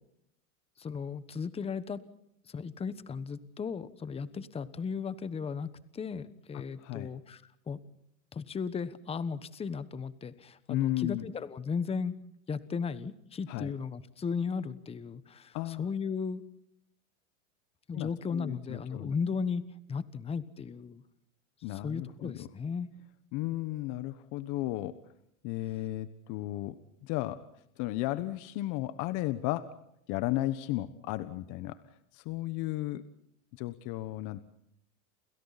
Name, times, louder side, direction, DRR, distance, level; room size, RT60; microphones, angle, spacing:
voice 1, 0.8-2.0 2.4-7.8 8.3-12.1 12.5-16.4 17.9-21.0 21.7-22.9, left 5 dB, 15° left, 14 dB, 1.2 m, -36 dB
voice 2, 10.7-11.2 13.5-13.7 15.5-15.9 17.9-19.1 21.6-22.5 23.3-25.0 25.4-26.8 27.0-27.4 27.8-29.7 30.1-31.8 32.1-33.0 33.5-34.4, left 16 dB, 45° left, 12 dB, 1.3 m, -34 dB
29.5 x 29.0 x 4.2 m, 0.76 s
supercardioid pair, 130°, 41 cm